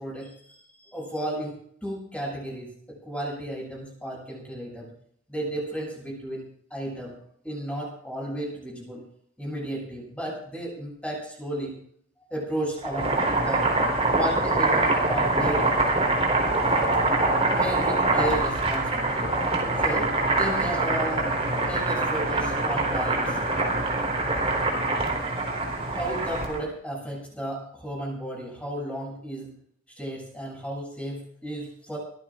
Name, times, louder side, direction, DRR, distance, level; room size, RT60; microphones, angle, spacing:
voice 1, 0.0-1.6 1.8-4.9 5.3-6.4 6.7-7.1 7.4-9.0 9.4-11.8 12.3-13.1 13.4-13.7 14.1-15.7 17.5-19.3 19.8-21.3 21.6-23.4 25.9-29.5 30.0-32.0, right 1 dB, 5° left, -3 dB, 7.7 m, -33 dB
Boiling, 12.8-26.6, right 2 dB, 30° right, 4.2 m, -24 dB
23.5 x 17.0 x 2.6 m, 0.65 s
head